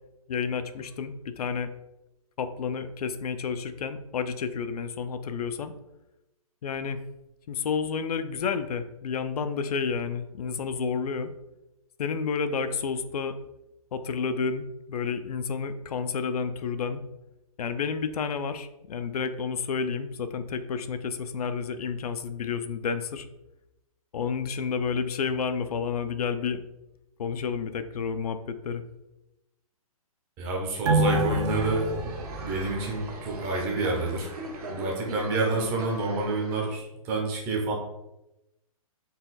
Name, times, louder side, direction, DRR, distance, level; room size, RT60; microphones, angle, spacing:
voice 1, 0.3-1.7 2.4-5.7 6.6-7.0 7.5-11.3 12.0-13.4 13.9-17.0 17.6-23.3 24.1-26.6 27.2-28.8, left 6 dB, 85° left, 10 dB, 0.5 m, -30 dB
voice 2, 30.4-32.1 32.4-34.3 34.7-37.7, right 2 dB, 10° right, -1 dB, 0.5 m, -28 dB
sound 1, 30.9-33.8 34.1-34.2, right 2 dB, 50° right, 0.7 m, -28 dB
sound 2, 31.5-36.7, right 2 dB, 90° right, 1.2 m, -40 dB
4.0 x 2.3 x 3.9 m, 0.93 s
hypercardioid pair, 170°, 19 cm